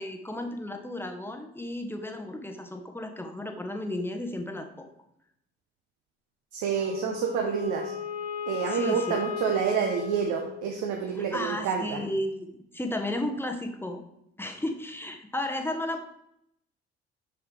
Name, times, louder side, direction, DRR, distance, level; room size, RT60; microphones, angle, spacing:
voice 1, 0.0-4.9 8.6-9.2 11.1-14.0 14.4-16.0, left 1 dB, 5° left, 4 dB, 1.0 m, -33 dB
voice 2, 6.5-7.9 8.5-12.0, right 7 dB, 55° right, 2 dB, 0.9 m, -28 dB
Wind instrument woodwind instrument, 6.7-11.1, left 8 dB, 45° left, 1.6 m, -36 dB
6.8 x 6.1 x 3.2 m, 0.78 s
figure-of-eight pair, 45°, 34 cm